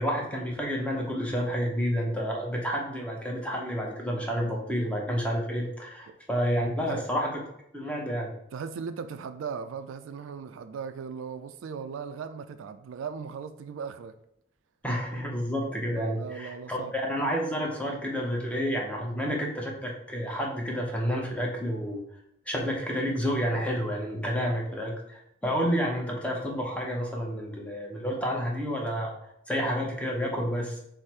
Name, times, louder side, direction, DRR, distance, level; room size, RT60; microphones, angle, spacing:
voice 1, 0.0-7.4 7.7-8.3 14.8-22.0 22.5-29.1 29.5-30.8, equal, 5° left, 0.7 m, -30 dB
voice 2, 8.5-14.1 16.0-16.9, right 6 dB, 85° right, 0.3 m, -38 dB
4.8 x 2.0 x 4.4 m
head